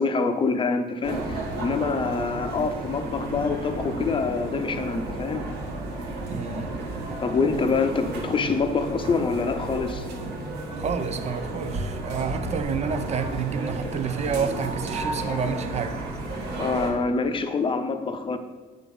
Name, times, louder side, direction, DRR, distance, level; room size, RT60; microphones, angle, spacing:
voice 1, 0.0-5.4 7.2-10.1 16.6-18.4, left 4 dB, 30° left, 8 dB, 0.7 m, -26 dB
sound 1, 1.0-16.9, right 2 dB, 85° right, 1.7 m, -32 dB
voice 2, 6.3-6.7 10.7-16.0, right 6 dB, 40° right, 9 dB, 0.7 m, -29 dB
7.7 x 3.6 x 5.4 m, 1.3 s
cardioid pair, 110°, 17 cm